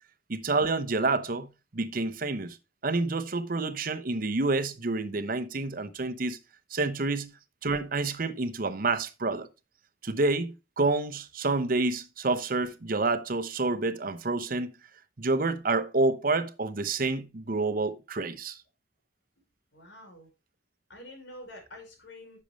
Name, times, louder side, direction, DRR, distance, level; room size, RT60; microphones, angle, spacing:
voice 1, 0.3-2.6 2.8-6.4 6.7-7.3 7.6-9.5 10.0-14.7 15.2-18.6, right 3 dB, 50° right, 0.9 m, -28 dB
voice 2, 19.7-20.3 20.9-22.4, left 1 dB, 85° left, 4.9 m, -47 dB
10.5 x 6.8 x 3.2 m
head